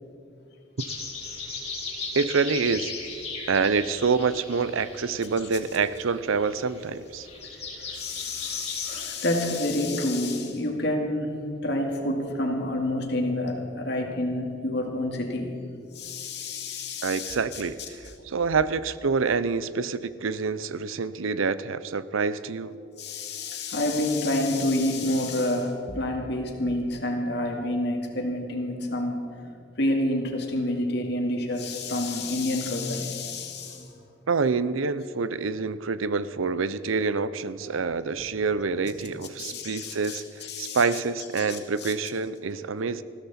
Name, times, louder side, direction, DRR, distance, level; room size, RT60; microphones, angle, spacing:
sound 1, 0.8-9.0, left 4 dB, 30° left, 2.8 m, -37 dB
voice 1, 2.1-2.9 3.5-7.3 17.0-17.8 18.2-22.7 34.3-43.0, right 4 dB, 85° right, 15 dB, 0.6 m, -27 dB
voice 2, 7.5-15.6 15.9-17.6 18.0-18.1 23.0-29.2 29.8-34.0 37.6-37.9 39.4-41.0 41.4-41.9, left 1 dB, 55° left, 2 dB, 2.3 m, -28 dB
20.5 x 15.5 x 4.3 m, 2.6 s
head